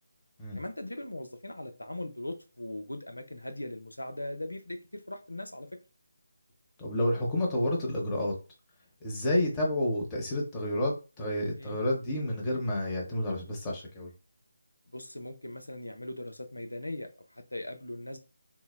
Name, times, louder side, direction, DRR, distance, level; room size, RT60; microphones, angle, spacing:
voice 1, 0.5-5.7 11.5-11.8 14.9-18.2, left 1 dB, 85° left, 0.5 m, -39 dB
voice 2, 6.8-8.3 9.0-14.1, left 1 dB, 15° left, 0.7 m, -30 dB
3.8 x 2.0 x 2.2 m
figure-of-eight pair, 155°, 0 cm